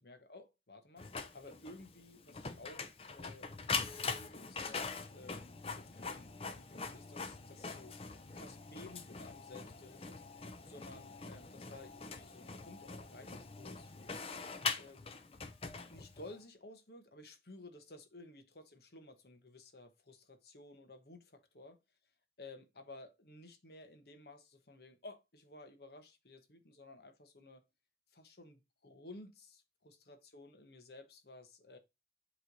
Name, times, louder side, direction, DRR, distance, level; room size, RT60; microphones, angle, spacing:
voice 1, 0.0-3.5 3.9-10.2 10.7-13.9 14.7-15.2 15.9-21.8 22.4-27.6 28.1-31.8, left 2 dB, 60° left, 1.1 m, -55 dB
Printer, 1.0-16.3, left 4 dB, 30° left, 0.6 m, -43 dB
7.7 x 3.2 x 3.9 m
head